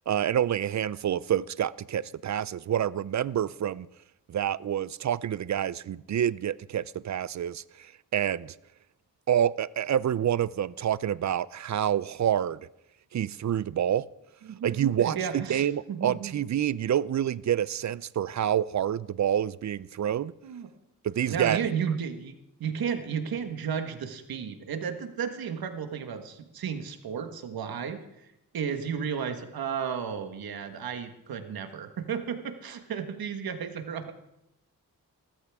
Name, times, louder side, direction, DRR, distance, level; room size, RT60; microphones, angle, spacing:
voice 1, 0.1-3.9 4.3-8.5 9.3-12.6 13.1-14.1 14.6-20.3 21.0-21.6, right 10 dB, 55° right, 0.5 m, -27 dB
voice 2, 15.0-16.3 20.4-20.7 21.2-28.0 28.5-34.1, right 7 dB, 90° right, 1.5 m, -33 dB
18.0 x 14.0 x 3.6 m
cardioid pair, 80°, 35 cm